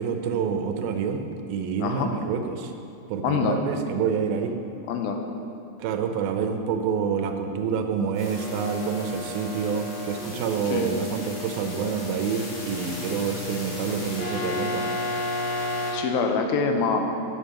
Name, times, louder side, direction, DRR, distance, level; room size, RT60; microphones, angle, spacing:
voice 1, 0.0-2.7 3.1-4.6 5.8-14.9, right 6 dB, 80° right, 6 dB, 2.5 m, -27 dB
voice 2, 3.2-3.6 4.9-5.2 10.7-10.9 15.9-17.0, left 5 dB, 80° left, 4 dB, 2.5 m, -25 dB
sound 1, 8.1-15.9, left 2 dB, 60° left, 3.7 m, -33 dB
9.2 x 7.1 x 6.4 m, 2.6 s
omnidirectional pair, 4.4 m